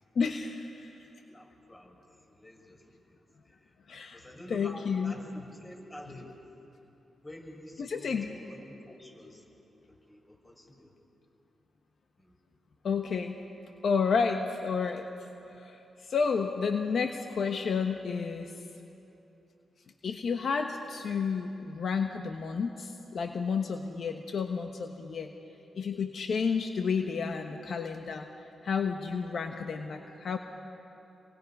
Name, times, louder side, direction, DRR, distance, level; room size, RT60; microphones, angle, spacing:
voice 1, 0.1-0.9 3.9-4.2 4.5-5.1 7.8-8.3 12.8-13.3 13.8-15.1 15.5-18.5 20.0-25.3 25.7-28.3 28.6-30.4, left 5 dB, 70° left, 5 dB, 1.2 m, -31 dB
voice 2, 1.2-3.2 3.4-3.7 4.1-6.3 7.2-9.5 9.9-10.9 12.2-12.3, left 1 dB, 20° left, 1 dB, 5.5 m, -49 dB
28.5 x 24.0 x 5.5 m, 2.9 s
cardioid pair, 55°, 0 cm